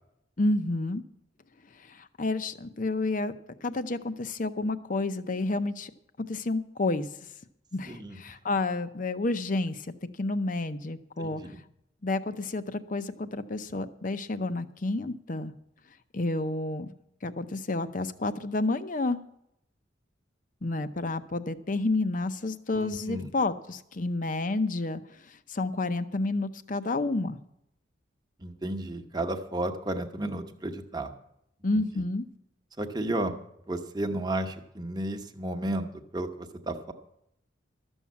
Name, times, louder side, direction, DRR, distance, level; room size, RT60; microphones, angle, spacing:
voice 1, 0.4-1.0 1.9-3.3 3.6-5.9 6.2-7.1 7.7-9.8 10.2-11.4 12.0-15.5 16.1-16.9 17.2-19.2 20.6-25.0 25.3-27.4 31.6-32.2, left 2 dB, 40° left, 11 dB, 0.7 m, -30 dB
voice 2, 7.9-8.4 11.2-11.6 22.7-23.3 28.4-31.1 31.7-31.8 32.8-33.3 33.7-36.9, right 1 dB, 20° right, 5 dB, 1.0 m, -33 dB
13.0 x 7.2 x 8.4 m, 0.78 s
head